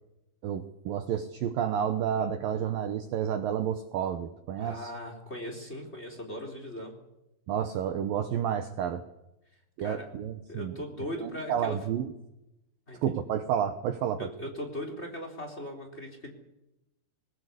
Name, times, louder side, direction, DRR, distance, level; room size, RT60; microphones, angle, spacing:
voice 1, 0.4-4.9 7.5-9.0 9.8-10.7 11.2-12.1 13.0-14.3, right 9 dB, 70° right, 9 dB, 2.3 m, -30 dB
voice 2, 4.6-6.9 9.8-10.1 10.5-11.8 12.9-13.0 14.2-16.3, equal, 15° left, 4 dB, 3.5 m, -39 dB
20.5 x 20.5 x 8.4 m, 0.92 s
omnidirectional pair, 5.2 m